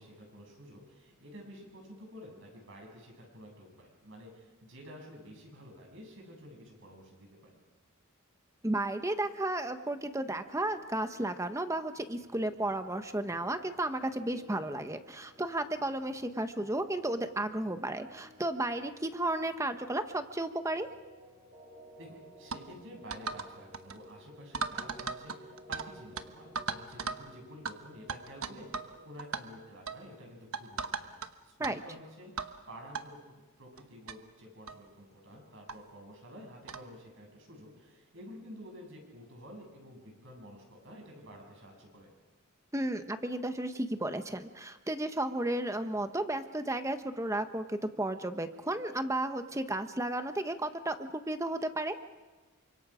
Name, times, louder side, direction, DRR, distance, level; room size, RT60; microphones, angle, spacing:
voice 1, 0.0-7.6 22.0-31.1 31.4-42.1, equal, 60° right, 1 dB, 7.8 m, -50 dB
voice 2, 8.6-20.9 31.6-31.8 42.7-52.0, right 1 dB, 15° right, 8 dB, 1.2 m, -33 dB
sound 1, 10.4-29.0, equal, 35° right, 7.4 m, -57 dB
sound 2, 22.5-22.7 23.1-23.5 23.7-24.0 24.5-25.9 26.2-26.3 26.6-27.2 27.7-27.8 28.1-28.9 29.2-29.4 29.9-30.0 30.5-31.3 31.6-31.7 32.4-32.6 32.9-33.0 33.8-33.9 34.1-34.2 34.7-34.8 35.7-35.8 36.7-36.9, right 5 dB, 85° right, 1.2 m, -36 dB
29.0 x 25.5 x 5.1 m, 1.2 s
head